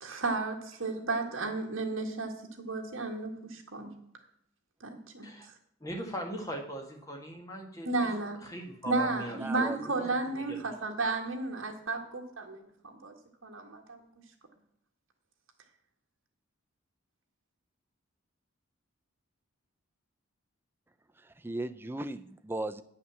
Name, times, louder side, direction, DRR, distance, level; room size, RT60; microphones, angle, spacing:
voice 1, 0.0-3.9 4.8-5.3 7.9-8.4 8.9-13.1 13.4-14.1, right 3 dB, 65° right, 2 dB, 1.8 m, -33 dB
voice 2, 5.8-7.9 8.4-9.4 9.9-10.6, equal, 15° left, 1 dB, 1.6 m, -40 dB
voice 3, 9.3-9.8 21.2-22.8, right 2 dB, 10° right, 10 dB, 0.4 m, -37 dB
9.4 x 5.8 x 7.5 m, 0.74 s
head